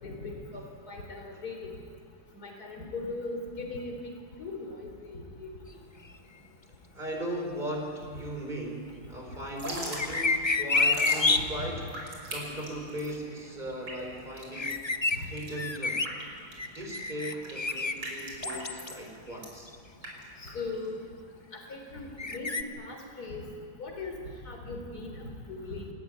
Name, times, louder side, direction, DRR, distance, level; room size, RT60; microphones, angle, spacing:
voice 1, 0.0-1.8 2.4-4.1 4.4-5.5 11.4-11.7 15.1-15.2 20.4-21.0 21.5-23.5 23.8-24.2 24.4-25.2 25.5-25.8, left 3 dB, 55° left, 3 dB, 4.2 m, -39 dB
voice 2, 6.9-12.0 12.3-14.8 15.1-16.0 16.8-19.7, right 1 dB, 25° right, 1 dB, 5.2 m, -38 dB
Drip / Trickle dribble, 9.4-21.0, right 1 dB, 80° right, 6.0 m, -41 dB
sound 1, 10.0-11.4 14.5-15.2 15.6-16.1 16.6-17.9 18.4-19.0 19.7-19.8 22.2-22.6, left 3 dB, 30° left, 0.5 m, -27 dB
28.5 x 18.0 x 9.4 m, 2.2 s
omnidirectional pair, 1.9 m